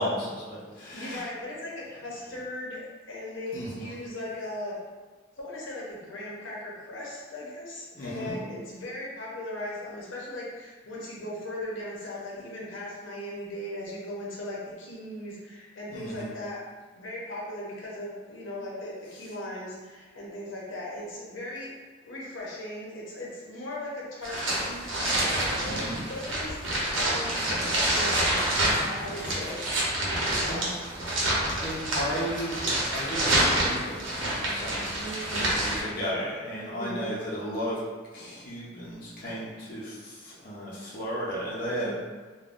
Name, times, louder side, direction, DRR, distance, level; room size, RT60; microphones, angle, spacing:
voice 1, 0.0-1.2 3.5-3.8 7.9-8.4 15.9-16.3 25.6-26.0 29.3-29.5 30.5-30.7 31.6-34.8 35.4-37.8 38.1-41.9, equal, 45° left, -7 dB, 0.6 m, -34 dB
voice 2, 0.9-2.8 3.1-4.7 5.4-16.6 16.9-21.7 22.1-24.9 25.4-28.4 28.8-29.6 30.0-30.7 35.0-35.5 36.7-37.2 41.8-41.9, left 1 dB, 80° left, -5 dB, 0.7 m, -38 dB
sound 1, 24.2-35.8, right 1 dB, 80° right, 0.8 m, -27 dB
3.4 x 2.2 x 2.5 m, 1.4 s
head